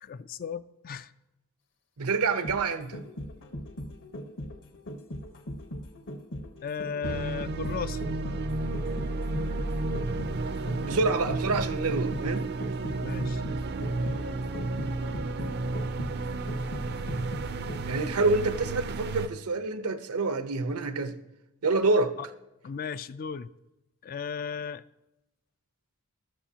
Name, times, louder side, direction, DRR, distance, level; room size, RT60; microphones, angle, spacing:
voice 1, 0.0-1.1 6.6-8.0 13.0-13.4 22.2-22.3 22.6-23.5 24.0-24.8, left 6 dB, 40° left, 0.3 m, -35 dB
voice 2, 2.0-3.0 10.8-12.5 17.9-21.2 21.6-22.1, right 3 dB, 75° right, 0.8 m, -27 dB
sound 1, 2.2-18.1 18.4-18.5, equal, 55° left, 1.0 m, -40 dB
sound 2, 7.0-19.3, right 2 dB, 50° right, 0.5 m, -32 dB
13.0 x 13.0 x 2.8 m
head